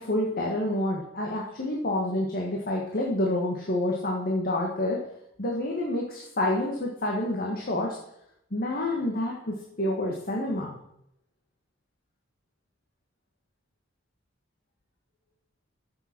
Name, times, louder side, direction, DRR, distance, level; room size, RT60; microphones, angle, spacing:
voice 1, 0.0-5.0 5.4-8.0 8.5-10.7, left 1 dB, 50° left, -1 dB, 1.6 m, -28 dB
14.5 x 7.1 x 4.5 m, 0.78 s
head